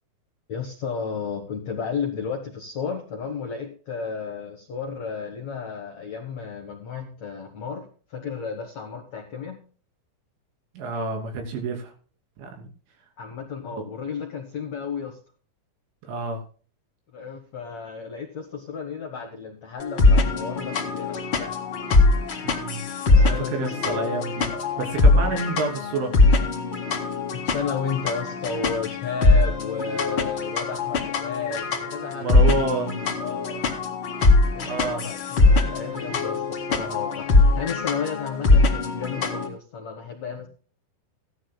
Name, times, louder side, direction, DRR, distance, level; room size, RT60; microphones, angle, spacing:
voice 1, 0.5-9.6 13.2-15.2 17.1-21.6 23.1-23.7 25.1-25.3 27.3-32.5 33.2-33.6 34.5-40.5, left 5 dB, 70° left, 3 dB, 1.6 m, -33 dB
voice 2, 10.8-11.9 12.4-12.7 16.0-16.4 22.4-22.9 23.2-24.5 24.8-26.1 32.1-33.1 34.6-35.0, right 3 dB, 80° right, 2 dB, 5.4 m, -29 dB
sound 1, 19.8-39.5, left 3 dB, 40° left, 1.9 m, -22 dB
17.0 x 12.5 x 2.2 m, 0.39 s
omnidirectional pair, 5.5 m